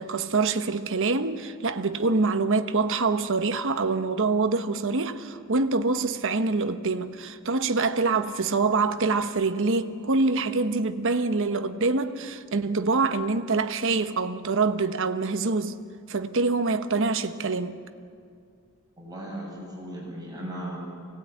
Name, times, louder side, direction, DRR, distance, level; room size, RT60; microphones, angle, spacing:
voice 1, 0.0-15.8 16.1-17.8, right 3 dB, 60° right, 1.1 m, -25 dB
voice 2, 19.0-20.8, right 1 dB, 20° right, 6.6 m, -37 dB
24.0 x 18.5 x 9.3 m
head